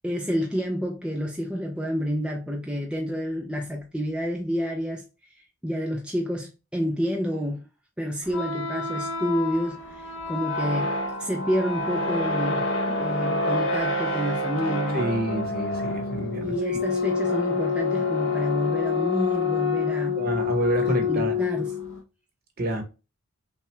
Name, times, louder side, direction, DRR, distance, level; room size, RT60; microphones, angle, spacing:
voice 1, 0.0-5.0 5.6-7.7 8.0-10.9 11.2-15.1 16.4-20.2 20.8-21.7, equal, 5° right, 0.4 m, -29 dB
sound 1, 8.2-22.0, left 4 dB, 60° left, 0.7 m, -27 dB
voice 2, 14.9-16.8 20.1-21.3 22.6-22.8, right 2 dB, 45° right, 1.0 m, -28 dB
5.7 x 2.3 x 3.2 m
head